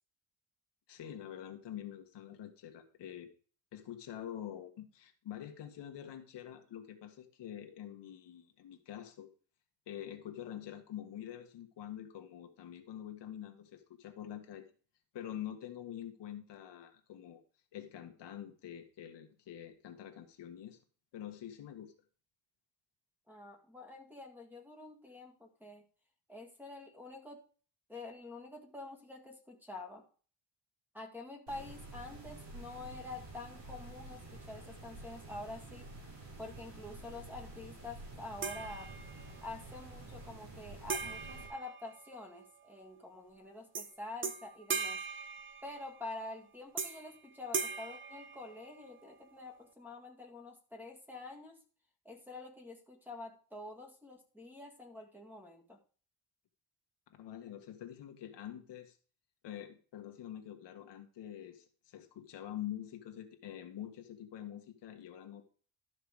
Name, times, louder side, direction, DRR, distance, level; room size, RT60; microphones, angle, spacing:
voice 1, 0.9-3.3 3.7-9.3 9.9-14.7 15.1-17.4 17.7-20.8 21.1-21.9 57.1-59.0 59.4-65.5, left 11 dB, 65° left, 5 dB, 1.6 m, -46 dB
voice 2, 23.3-25.8 26.3-27.4 27.9-30.0 30.9-35.9 36.4-38.9 39.4-45.0 45.6-51.6 52.1-55.8, left 2 dB, 5° right, 3 dB, 1.9 m, -47 dB
sound 1, 31.5-41.5, right 2 dB, 70° right, 5.3 m, -49 dB
sound 2, 38.4-39.4 40.9-42.5 43.7-43.9 44.2-46.1 46.8-47.2 47.5-49.0, right 5 dB, 25° right, 0.9 m, -40 dB
12.5 x 6.0 x 4.8 m, 0.41 s
cardioid pair, 145°, 45 cm